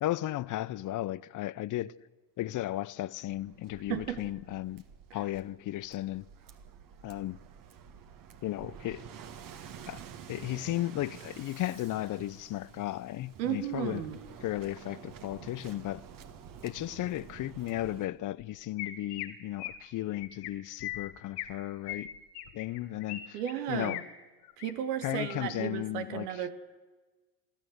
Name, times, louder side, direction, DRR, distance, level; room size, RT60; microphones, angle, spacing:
voice 1, 0.0-1.9 2.4-4.8 5.1-6.2 7.0-7.4 8.4-9.0 9.9-10.0 10.3-14.1 14.4-16.0 16.6-22.1 22.5-23.4 23.7-24.0 25.0-26.5, left 15 dB, 45° left, 0.6 m, -35 dB
Waves surf, 3.3-18.1, right 7 dB, 45° right, 1.9 m, -50 dB
voice 2, 3.9-4.2 13.4-14.2 23.3-24.0 24.6-26.5, right 11 dB, 85° right, 1.7 m, -34 dB
Chirp tweet, 18.4-18.5 18.8-19.3 19.6-19.8 20.1-20.5 20.8-21.5 21.9-23.2 23.5-24.0 24.4-24.7 25.1-25.5, left 13 dB, 85° left, 2.0 m, -40 dB
23.5 x 14.0 x 8.0 m
supercardioid pair, 95°, 46 cm